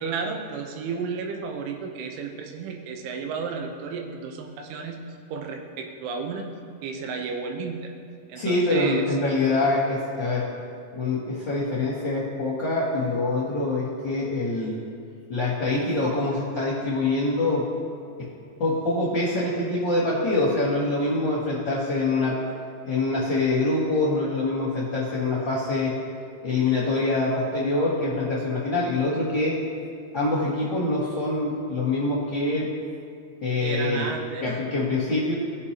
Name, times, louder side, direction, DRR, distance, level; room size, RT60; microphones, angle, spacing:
voice 1, 0.0-5.0 5.3-6.5 6.8-7.9 8.3-9.0 33.6-34.4, right 5 dB, 90° right, 3 dB, 3.4 m, -32 dB
voice 2, 8.3-10.4 10.9-14.7 15.3-17.6 18.6-22.3 22.9-25.9 26.4-29.6 30.1-32.7 33.4-34.0 34.4-35.3, left 2 dB, 85° left, -8 dB, 1.0 m, -25 dB
19.5 x 6.7 x 2.9 m, 2.3 s
omnidirectional pair, 5.3 m